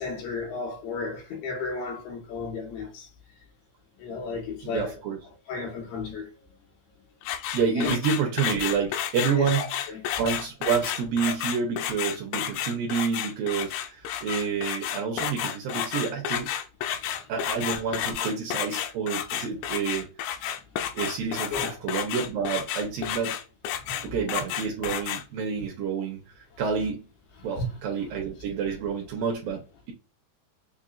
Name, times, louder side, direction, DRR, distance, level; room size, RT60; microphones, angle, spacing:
voice 1, 0.0-3.1 4.0-4.9 5.5-6.3 7.8-7.9 9.4-9.7 21.5-21.7 23.8-24.1 27.6-27.7, left 4 dB, 70° left, 3.3 m, -33 dB
voice 2, 4.6-5.2 7.5-9.7 10.2-16.5 17.3-20.1 20.9-23.4 24.0-26.2 26.6-27.0 27.4-29.9, right 6 dB, 75° right, 2.4 m, -28 dB
sound 1, 7.2-25.2, left 10 dB, 85° left, 2.9 m, -31 dB
6.8 x 2.7 x 2.4 m
omnidirectional pair, 4.9 m